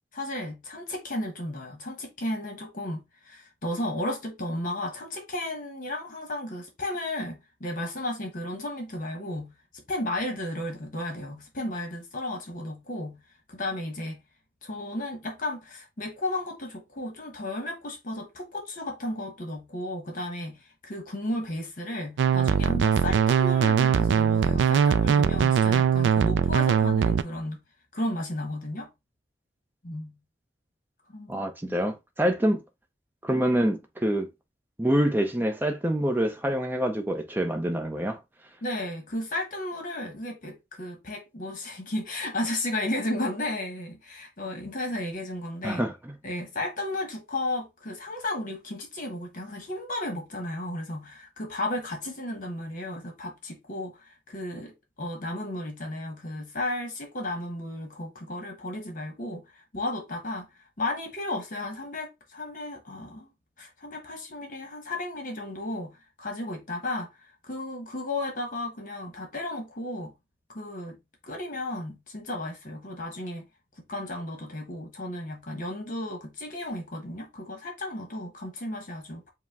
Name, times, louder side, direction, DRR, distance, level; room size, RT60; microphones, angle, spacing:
voice 1, 0.1-13.2 13.5-14.2 14.6-27.6 27.9-28.9 29.8-30.1 31.1-31.8 38.6-45.8 46.2-60.5 60.8-63.3 63.6-70.1 70.5-71.0 71.2-73.4 73.9-79.3, left 1 dB, 45° left, 1.1 m, -34 dB
sound 1, 22.2-27.2, right 7 dB, 85° right, 0.3 m, -21 dB
voice 2, 31.3-32.6 33.2-34.3 34.8-38.2 45.6-46.1, equal, 10° right, 0.6 m, -26 dB
5.1 x 2.1 x 3.4 m
head